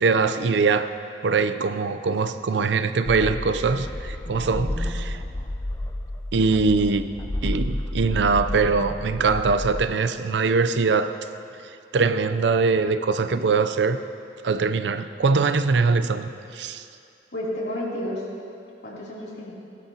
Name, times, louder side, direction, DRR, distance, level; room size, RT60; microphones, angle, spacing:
voice 1, 0.0-0.9 1.2-5.2 6.3-7.0 7.4-11.1 11.9-14.0 14.4-16.8, right 4 dB, 80° right, 11 dB, 0.5 m, -22 dB
sound 1, 3.0-9.8, left 1 dB, 20° left, 0.4 m, -31 dB
voice 2, 4.2-5.1 17.3-18.2 18.8-19.5, left 1 dB, 70° left, -6 dB, 2.9 m, -32 dB
17.5 x 12.0 x 2.8 m, 2.6 s
head